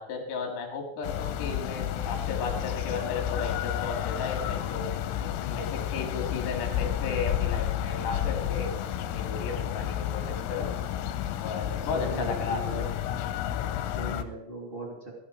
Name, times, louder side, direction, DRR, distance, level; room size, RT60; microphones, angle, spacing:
voice 1, 0.0-4.9 5.2-8.7 9.1-10.8 11.4-12.6 13.6-13.7, left 4 dB, 65° left, 2 dB, 4.3 m, -34 dB
sound 1, 1.0-14.2, left 11 dB, 85° left, 3.3 m, -31 dB
voice 2, 11.8-12.8 13.8-15.1, right 1 dB, 35° right, -1 dB, 0.8 m, -38 dB
17.0 x 11.0 x 4.6 m, 0.89 s
omnidirectional pair, 5.6 m